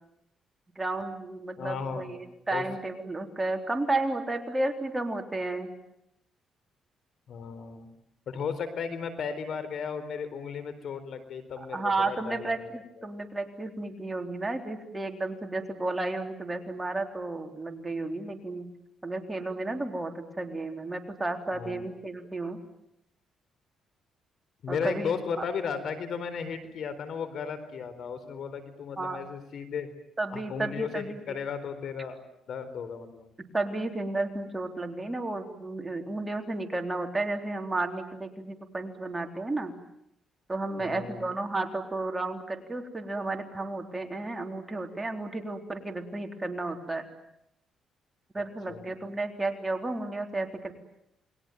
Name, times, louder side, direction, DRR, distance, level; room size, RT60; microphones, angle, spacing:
voice 1, 0.8-5.7 11.6-18.7 19.0-22.6 24.7-25.1 25.4-25.5 29.0-29.2 30.2-31.2 33.5-39.7 40.5-47.1 48.3-50.7, right 2 dB, 15° right, 4 dB, 3.8 m, -32 dB
voice 2, 1.6-2.2 2.5-2.7 7.3-7.9 8.3-12.5 13.0-13.1 21.5-21.9 24.6-29.9 30.3-32.2 32.5-33.3 40.8-41.2 48.7-49.0, left 6 dB, 65° left, 12 dB, 4.2 m, -35 dB
29.0 x 22.0 x 9.3 m, 0.80 s
cardioid pair, 90°, 0 cm